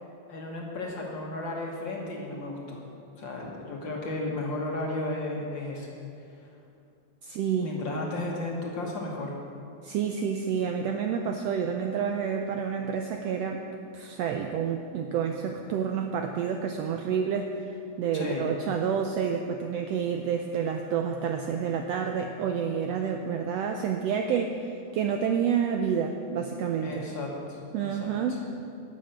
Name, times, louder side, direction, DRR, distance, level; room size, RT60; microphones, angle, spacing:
voice 1, 0.3-2.8 3.2-6.0 6.3-6.4 7.6-9.3 18.1-18.5 26.8-28.4, left 2 dB, 50° left, -1 dB, 1.6 m, -34 dB
voice 2, 7.2-7.7 9.8-13.6 13.9-27.1 27.7-28.4, right 7 dB, 80° right, 4 dB, 1.4 m, -29 dB
11.0 x 6.7 x 8.9 m, 2.5 s
omnidirectional pair, 3.5 m